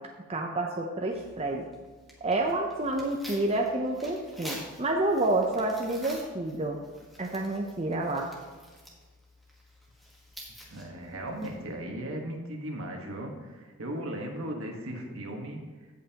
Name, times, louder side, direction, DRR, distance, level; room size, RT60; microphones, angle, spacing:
voice 1, 0.3-1.7 2.2-6.8 7.2-8.3, right 2 dB, 30° right, 1 dB, 0.6 m, -29 dB
Tearing, 1.1-11.8, equal, ahead, 1.4 m, -49 dB
voice 2, 10.7-15.6, right 1 dB, 65° right, 1 dB, 1.5 m, -37 dB
15.5 x 5.5 x 2.9 m, 1.4 s
head